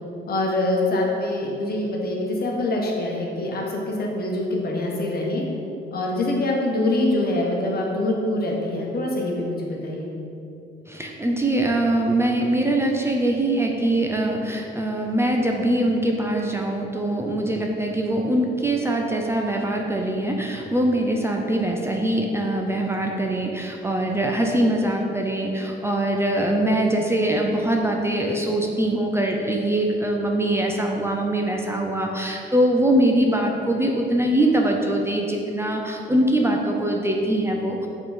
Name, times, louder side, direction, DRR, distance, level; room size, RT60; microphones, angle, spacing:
voice 1, 0.3-5.4 5.9-10.1, left 1 dB, 50° left, -1 dB, 1.2 m, -24 dB
voice 2, 10.9-37.9, right 1 dB, 15° right, 1 dB, 0.6 m, -23 dB
5.9 x 3.9 x 4.9 m, 2.8 s
cardioid pair, 90°, 20 cm